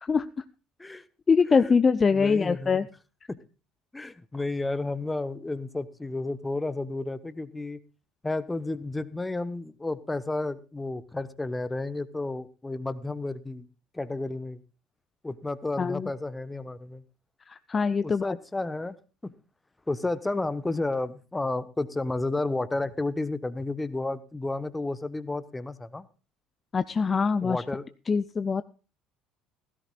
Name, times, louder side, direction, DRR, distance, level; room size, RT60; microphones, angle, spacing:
voice 1, 0.0-0.4 1.3-2.9 15.8-16.1 17.5-18.4 26.7-27.6 28.1-28.6, left 5 dB, 30° left, 13 dB, 0.6 m, -24 dB
voice 2, 2.1-2.9 3.3-3.4 3.9-7.8 8.2-13.7 13.9-14.6 15.2-17.0 18.0-18.9 19.2-19.3 19.9-26.1 27.4-27.8, left 2 dB, 15° left, 15 dB, 1.0 m, -32 dB
16.5 x 15.0 x 2.4 m, 0.35 s
figure-of-eight pair, 55°, 0 cm